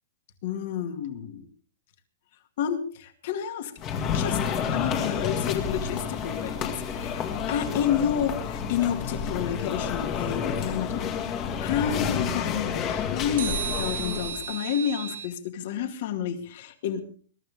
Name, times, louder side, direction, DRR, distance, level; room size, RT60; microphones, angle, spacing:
voice 1, 0.4-1.5 2.6-3.7 4.1-4.4 4.7-7.2 7.5-17.0, left 9 dB, 50° left, 6 dB, 2.3 m, -30 dB
sound 1, 3.8-14.4, left 7 dB, 25° left, 1.9 m, -30 dB
sound 2, 5.7-7.0 13.4-15.3, right 8 dB, 75° right, 3.1 m, -35 dB
21.5 x 12.5 x 3.6 m, 0.44 s
hypercardioid pair, 160°, 0 cm